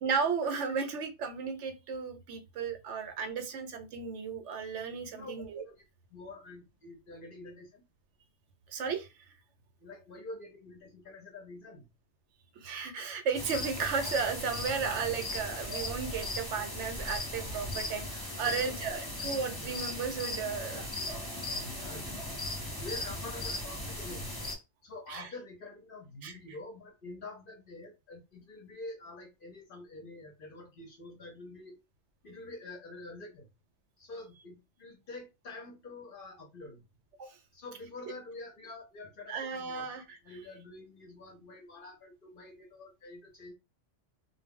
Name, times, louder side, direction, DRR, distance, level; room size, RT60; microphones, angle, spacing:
voice 1, 0.0-5.6 8.7-9.1 12.6-20.8 25.1-25.3 26.2-26.3 37.2-37.4 39.3-40.2, right 5 dB, 70° right, 0.8 m, -34 dB
voice 2, 5.1-5.7 6.1-7.8 9.8-11.9 18.3-19.0 20.7-20.9 21.3-22.4 22.8-24.3 24.8-31.8 32.2-33.5 34.0-36.9 37.5-39.9 40.2-43.5, left 2 dB, 55° left, 0.7 m, -47 dB
sound 1, 13.3-24.5, left 1 dB, 20° left, 0.8 m, -38 dB
2.2 x 2.0 x 3.5 m
omnidirectional pair, 1.3 m